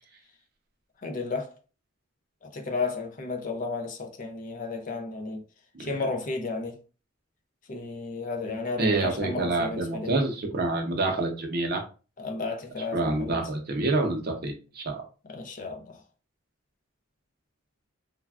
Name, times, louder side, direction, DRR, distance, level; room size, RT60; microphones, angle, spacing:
voice 1, 1.0-1.5 2.4-5.4 5.8-6.8 7.7-10.1 12.2-13.4 15.3-16.0, left 3 dB, 40° left, 0.4 m, -33 dB
voice 2, 8.8-11.8 12.9-15.0, right 2 dB, 45° right, 0.6 m, -27 dB
3.2 x 2.2 x 2.4 m
head